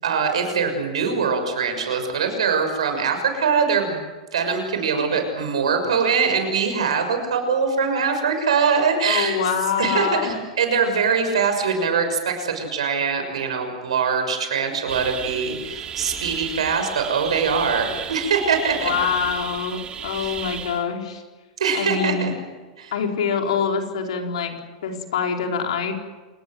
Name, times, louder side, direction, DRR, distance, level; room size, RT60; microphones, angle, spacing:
voice 1, 0.0-4.1 4.3-9.3 9.8-18.9 21.6-22.3 22.8-22.9, right 5 dB, 85° right, 6 dB, 6.4 m, -22 dB
voice 2, 9.0-10.4 18.8-21.2 21.7-22.3 22.9-24.5 24.8-25.9, left 6 dB, 75° left, 3 dB, 4.4 m, -25 dB
sound 1, 14.9-20.8, right 8 dB, 30° right, 2.5 m, -33 dB
28.0 x 19.5 x 8.0 m, 1.3 s
hypercardioid pair, 105°, 3 cm